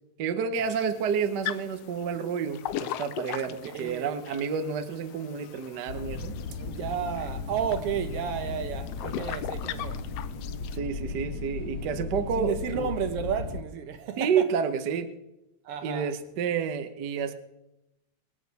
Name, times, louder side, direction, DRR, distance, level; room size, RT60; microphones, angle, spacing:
voice 1, 0.2-6.3 10.7-12.9 14.2-15.1 15.8-17.3, right 6 dB, 85° right, 0.9 m, -30 dB
sound 1, 0.6-10.8, left 12 dB, 80° left, 1.4 m, -40 dB
voice 2, 3.5-4.2 6.6-10.0 12.4-14.5 15.6-16.1, right 8 dB, 65° right, 1.6 m, -32 dB
sound 2, 5.9-13.6, left 4 dB, 50° left, 1.8 m, -36 dB
23.5 x 8.7 x 4.1 m
omnidirectional pair, 3.3 m